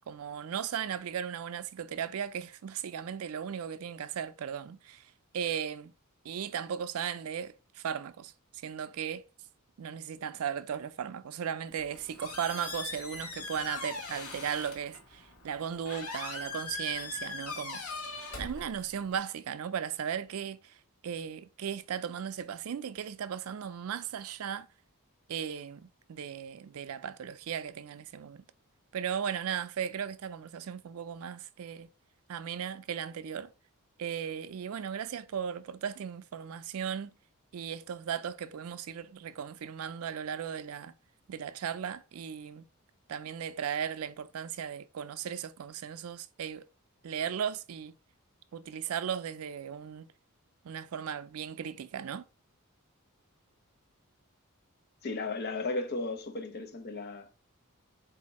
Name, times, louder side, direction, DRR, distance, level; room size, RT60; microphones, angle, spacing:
voice 1, 0.1-5.9 6.2-8.3 8.6-9.2 9.8-17.8 18.4-20.8 21.0-24.7 25.3-28.4 28.9-31.9 32.3-33.5 34.0-37.1 37.5-40.9 41.3-42.6 43.1-46.7 47.0-47.9 48.5-50.1 50.6-52.3, right 8 dB, 75° right, 0.4 m, -36 dB
Squeak, 11.7-19.2, left 3 dB, 80° left, 1.1 m, -41 dB
voice 2, 55.0-57.4, left 3 dB, 50° left, 0.6 m, -35 dB
4.1 x 2.7 x 4.0 m
head